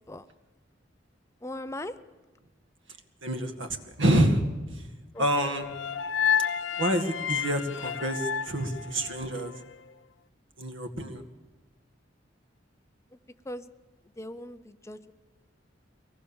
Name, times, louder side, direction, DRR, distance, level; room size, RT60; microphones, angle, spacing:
voice 1, 1.4-2.0 5.1-5.3 13.4-13.7 14.2-15.1, left 1 dB, 15° left, 11 dB, 0.6 m, -39 dB
voice 2, 3.2-4.4 5.2-5.7 6.8-9.5 10.6-11.2, right 1 dB, 85° right, 6 dB, 2.0 m, -27 dB
sound 1, 5.4-9.6, left 7 dB, 85° left, 0.6 m, -30 dB
23.5 x 18.5 x 7.2 m, 1.2 s
head